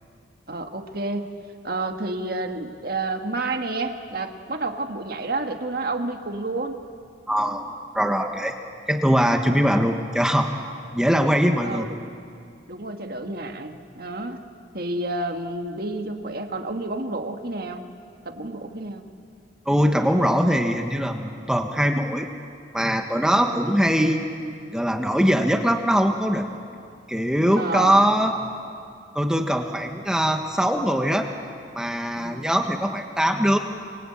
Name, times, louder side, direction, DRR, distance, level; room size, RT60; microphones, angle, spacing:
voice 1, 0.5-1.2 1.6-6.8 11.6-12.0 12.7-14.4 14.7-17.8 18.3-19.0 23.5-23.8 27.6-28.0 32.1-32.5, right 2 dB, 55° right, 5 dB, 1.9 m, -30 dB
voice 2, 7.3-7.6 7.9-8.5 8.9-10.5 10.9-11.9 19.6-22.3 22.7-24.2 24.7-26.5 27.1-28.3 29.1-31.3 31.7-33.6, equal, 5° right, 4 dB, 1.4 m, -21 dB
26.0 x 26.0 x 8.8 m, 2.3 s
head